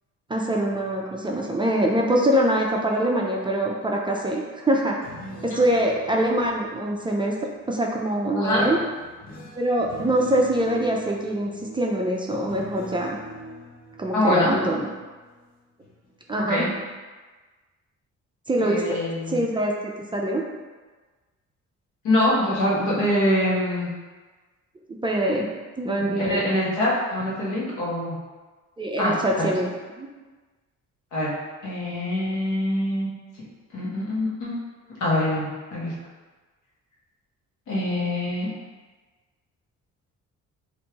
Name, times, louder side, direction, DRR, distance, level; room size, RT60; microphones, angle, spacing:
voice 1, 0.3-4.9 5.4-7.3 7.7-8.8 9.5-13.2 14.0-14.9 16.3-16.7 18.5-19.0 19.3-20.4 25.0-25.5 25.8-26.4 28.8-29.7 30.0-30.1, right 1 dB, 15° right, -1 dB, 0.4 m, -24 dB
sound 1, 4.8-7.7 8.5-15.4 15.8-16.1, equal, 30° left, 0.8 m, -43 dB
voice 2, 8.4-8.7 14.1-14.5 16.4-16.7 18.6-19.4 22.0-23.9 26.0-28.2 29.0-29.1 29.4-29.5 31.1-31.3 31.6-33.1 33.7-34.5 35.0-35.9 37.7-38.5, left 1 dB, 85° left, -6 dB, 1.1 m, -24 dB
3.3 x 2.6 x 2.9 m, 1.3 s
cardioid pair, 90°, 30 cm